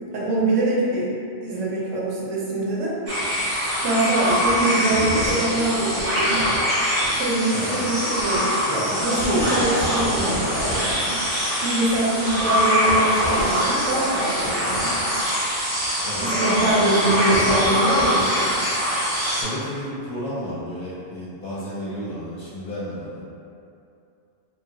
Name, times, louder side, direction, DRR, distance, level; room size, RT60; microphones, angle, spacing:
voice 1, 0.1-1.1 1.4-3.0 3.8-6.4 7.2-8.5 9.0-11.2 11.6-15.1 16.2-18.6, right 2 dB, 80° right, -5 dB, 1.0 m, -24 dB
sound 1, 3.1-19.4, equal, 35° right, 0.7 m, -23 dB
voice 2, 7.5-7.8 8.6-9.8 16.0-16.2 16.7-16.9 19.4-23.2, equal, 55° left, -8 dB, 0.7 m, -31 dB
3.1 x 2.4 x 2.6 m, 2.6 s
omnidirectional pair, 1.3 m